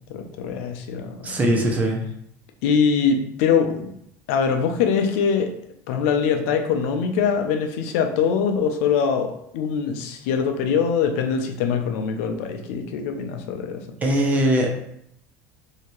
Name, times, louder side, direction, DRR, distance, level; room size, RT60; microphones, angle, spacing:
voice 1, 0.1-1.4 2.6-3.9 4.3-5.5 5.9-13.8, left 6 dB, 80° left, 5 dB, 0.5 m, -23 dB
voice 2, 1.2-2.0 14.0-14.8, right 1 dB, 20° right, 1 dB, 0.6 m, -21 dB
3.2 x 2.8 x 3.0 m, 0.73 s
supercardioid pair, 135°, 7 cm